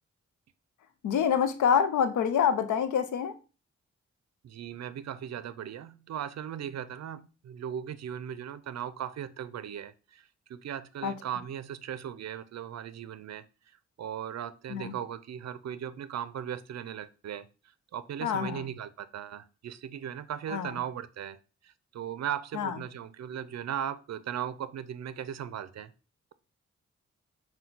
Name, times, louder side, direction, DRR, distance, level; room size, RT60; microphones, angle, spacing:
voice 1, 1.0-3.3 11.0-11.1 14.7-14.9 18.2-18.7 20.5-20.8 22.5-22.8, left 7 dB, 90° left, 11 dB, 0.5 m, -26 dB
voice 2, 4.4-13.4 14.0-17.5 17.9-21.4 21.6-25.9, right 9 dB, 65° right, 15 dB, 0.5 m, -38 dB
5.8 x 2.2 x 3.8 m, 0.33 s
cardioid pair, 50°, 29 cm